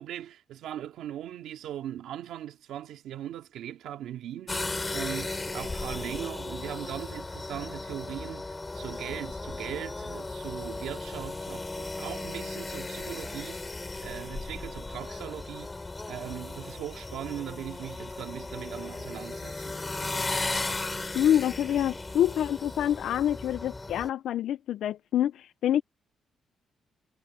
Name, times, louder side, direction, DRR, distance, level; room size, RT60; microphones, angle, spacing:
voice 1, 0.0-13.6 14.0-19.8, right 11 dB, 90° right, 2.2 m, -39 dB
sound 1, 4.5-24.1, left 2 dB, 20° left, 3.1 m, -36 dB
voice 2, 21.1-25.8, left 11 dB, 75° left, 0.5 m, -26 dB
cardioid pair, 135°, 0 cm